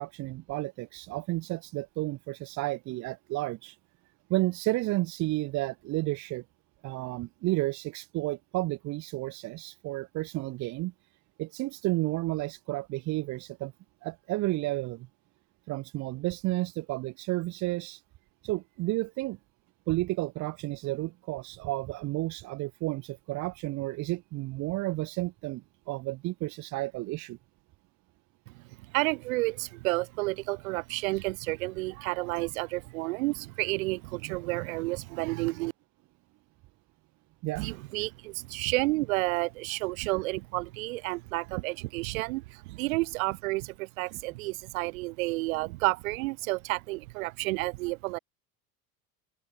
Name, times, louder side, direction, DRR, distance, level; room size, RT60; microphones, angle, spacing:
voice 1, 0.0-3.8 4.3-6.4 6.8-10.9 11.4-13.7 14.0-15.1 15.7-18.0 18.4-19.4 19.9-27.4 37.4-37.6, right 19 dB, 45° right, 0.8 m, -32 dB
voice 2, 28.9-35.7 37.6-48.2, right 22 dB, 70° right, 2.0 m, -31 dB
open air
hypercardioid pair, 95°, 42 cm